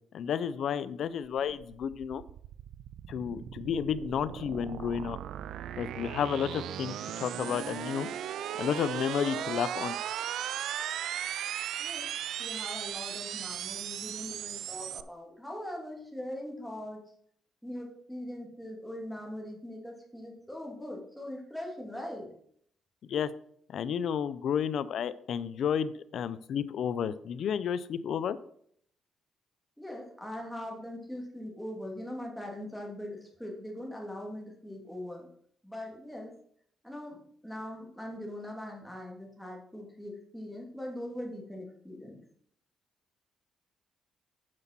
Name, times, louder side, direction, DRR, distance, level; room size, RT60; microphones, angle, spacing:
voice 1, 0.1-2.2 3.1-5.2 5.8-8.1 8.6-9.9 23.1-23.3 23.7-28.4, left 8 dB, 65° left, 15 dB, 0.5 m, -31 dB
sound 1, 1.3-15.0, right 11 dB, 75° right, 0.4 m, -37 dB
voice 2, 11.8-12.1 12.4-17.0 17.6-22.3 29.8-35.3 35.6-36.3 36.8-42.2, left 1 dB, ahead, -1 dB, 2.6 m, -41 dB
7.6 x 5.9 x 5.9 m, 0.65 s
cardioid pair, 90°, 0 cm